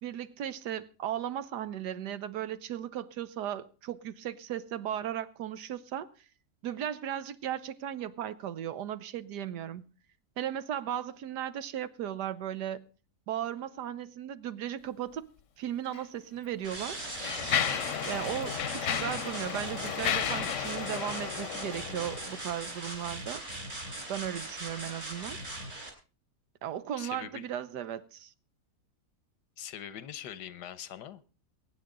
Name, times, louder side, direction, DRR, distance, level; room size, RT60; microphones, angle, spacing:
voice 1, 0.0-6.1 6.6-9.8 10.4-12.9 13.3-15.3 15.6-17.0 18.0-23.4 24.1-25.4 26.6-28.3, right 10 dB, 80° right, 1.4 m, -36 dB
Mechanisms, 15.8-16.0 16.7-22.5, left 8 dB, 55° left, 1.0 m, -33 dB
sound 1, 16.6-25.9, right 2 dB, 45° right, 4.3 m, -40 dB
voice 2, 27.0-27.4 29.6-31.2, left 9 dB, 90° left, 1.5 m, -42 dB
22.5 x 9.3 x 3.8 m
omnidirectional pair, 1.7 m